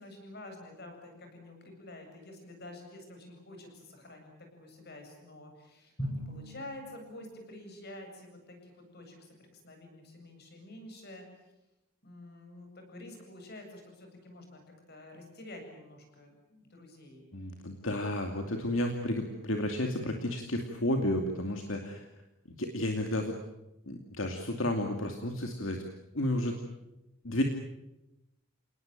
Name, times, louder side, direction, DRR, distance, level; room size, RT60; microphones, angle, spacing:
voice 1, 0.0-11.2 12.0-14.6 14.9-17.2, left 1 dB, 45° left, 4 dB, 8.0 m, -49 dB
Drum, 6.0-7.7, equal, 25° left, 6.4 m, -40 dB
voice 2, 17.3-22.0 22.6-23.4 23.9-25.8 26.1-26.6 27.2-27.4, left 1 dB, 65° left, 3 dB, 2.6 m, -32 dB
28.0 x 19.5 x 9.1 m, 0.93 s
head